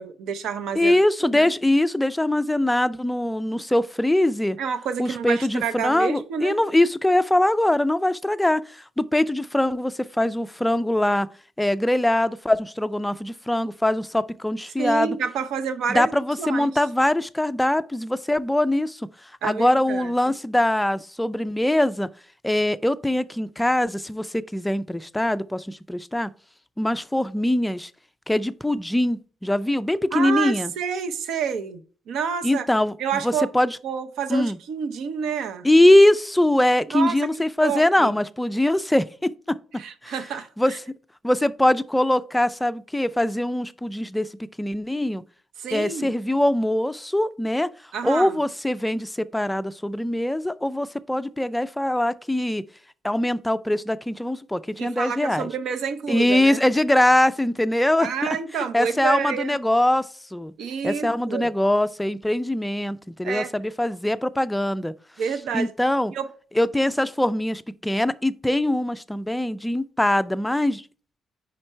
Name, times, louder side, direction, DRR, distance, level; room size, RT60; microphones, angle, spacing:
voice 1, 0.0-1.5 4.6-6.6 14.8-16.7 19.4-20.1 30.1-32.7 33.0-33.5 33.8-35.7 36.9-37.2 37.6-38.1 39.8-40.8 45.6-46.1 47.9-48.4 54.8-56.6 58.0-59.6 60.6-61.5 63.2-63.5 65.2-65.7 66.1-66.3, right 7 dB, 75° right, 0.6 m, -29 dB
voice 2, 0.7-4.6 5.0-11.3 11.6-15.2 15.9-19.0 19.4-22.1 22.4-26.3 26.8-27.9 28.3-30.7 32.4-32.9 33.2-33.8 34.3-34.6 35.6-39.6 40.0-40.1 40.6-40.7 41.2-44.3 44.6-45.2 45.7-47.7 48.0-52.6 53.0-55.5 56.1-60.5 60.8-64.9 65.5-66.1 66.6-70.8, left 1 dB, 5° left, 0.3 m, -22 dB
5.0 x 4.3 x 4.4 m
cardioid pair, 90°, 0 cm